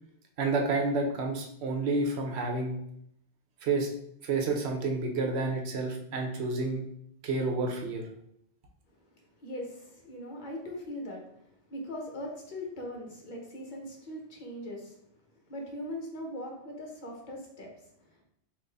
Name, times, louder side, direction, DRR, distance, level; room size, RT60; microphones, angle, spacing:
voice 1, 0.4-2.8 3.6-3.9 4.2-6.8 7.2-8.0, right 3 dB, 70° right, 2 dB, 0.9 m, -29 dB
voice 2, 8.9-18.2, left 1 dB, 45° left, 0 dB, 1.0 m, -41 dB
3.9 x 2.5 x 3.4 m, 0.72 s
omnidirectional pair, 1.2 m